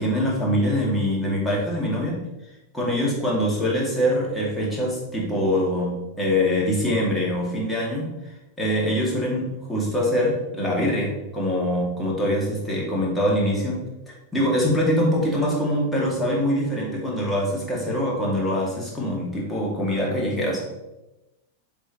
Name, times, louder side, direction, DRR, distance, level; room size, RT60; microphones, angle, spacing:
voice 1, 0.0-2.2 2.7-8.1 8.6-20.6, equal, 5° left, -4 dB, 2.4 m, -24 dB
7.8 x 5.4 x 3.1 m, 0.97 s
figure-of-eight pair, 90°, 0 cm